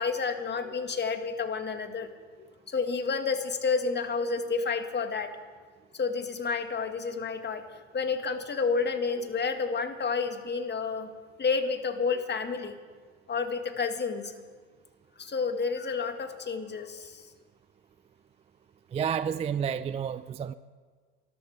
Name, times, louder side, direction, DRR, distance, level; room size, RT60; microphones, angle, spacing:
voice 1, 0.0-2.1 2.7-5.3 6.0-7.6 7.9-11.1 11.4-12.8 13.3-14.3 15.2-17.1, left 5 dB, 25° left, 7 dB, 1.7 m, -30 dB
voice 2, 18.9-20.5, right 7 dB, 15° right, 15 dB, 0.4 m, -30 dB
27.0 x 14.0 x 3.4 m, 1.5 s
hypercardioid pair, 70°, 38 cm